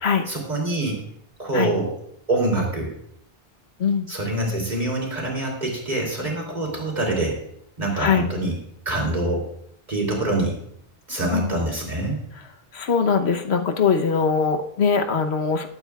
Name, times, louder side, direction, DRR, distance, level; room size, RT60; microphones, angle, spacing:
voice 1, 0.3-1.0 1.4-1.9 2.3-2.9 4.1-7.4 7.8-8.6 8.8-9.4 9.9-10.6 11.1-12.2, right 2 dB, 45° right, -1 dB, 3.4 m, -25 dB
voice 2, 12.7-15.7, left 6 dB, 90° left, 5 dB, 1.2 m, -21 dB
20.5 x 8.8 x 2.4 m, 0.70 s
omnidirectional pair, 1.1 m